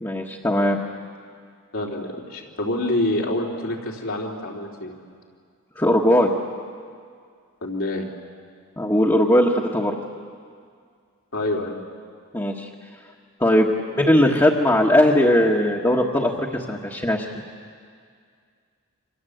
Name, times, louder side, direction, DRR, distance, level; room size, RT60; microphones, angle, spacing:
voice 1, 0.0-0.8 5.8-6.3 8.8-10.0 12.3-12.7 13.4-17.3, left 1 dB, 15° left, -2 dB, 1.6 m, -19 dB
voice 2, 1.7-4.9 7.6-8.1 11.3-11.8, left 1 dB, 70° left, -3 dB, 3.5 m, -26 dB
28.5 x 25.5 x 8.0 m, 2.1 s
head